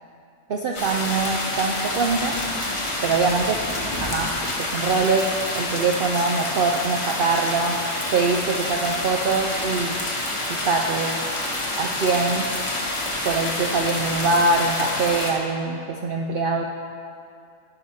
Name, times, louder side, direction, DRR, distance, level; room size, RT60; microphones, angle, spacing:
voice 1, 0.5-2.4 3.0-3.6 4.0-5.3 5.6-7.8 8.1-10.0 10.5-11.2 11.8-12.5 13.2-16.6, right 4 dB, 60° right, 1 dB, 0.6 m, -23 dB
sound 1, 0.7-15.3, left 1 dB, 25° left, 1.0 m, -28 dB
11.0 x 4.9 x 5.6 m, 2.5 s
omnidirectional pair, 1.3 m